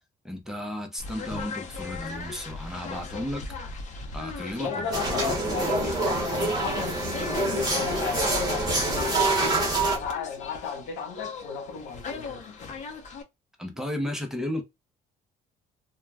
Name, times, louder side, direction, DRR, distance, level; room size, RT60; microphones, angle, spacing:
voice 1, 0.2-3.4 4.1-4.9 5.2-5.3 13.6-14.6, left 1 dB, 5° right, 0.7 m, -33 dB
sound 1, 1.0-13.2, left 4 dB, 45° left, 0.7 m, -38 dB
voice 2, 4.6-9.5 9.9-12.5, left 6 dB, 90° left, 1.0 m, -34 dB
sound 2, 4.9-10.0, right 2 dB, 20° right, 1.0 m, -26 dB
2.3 x 2.2 x 3.3 m
cardioid pair, 110°, 17 cm